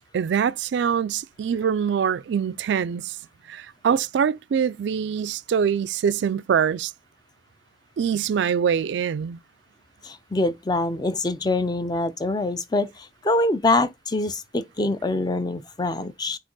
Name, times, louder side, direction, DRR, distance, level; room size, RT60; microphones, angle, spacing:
voice 1, 0.1-3.2 3.5-6.9 8.0-9.4, right 7 dB, 70° right, 0.3 m, -24 dB
voice 2, 10.0-16.4, left 2 dB, 20° left, 0.4 m, -25 dB
8.6 x 2.9 x 3.9 m
head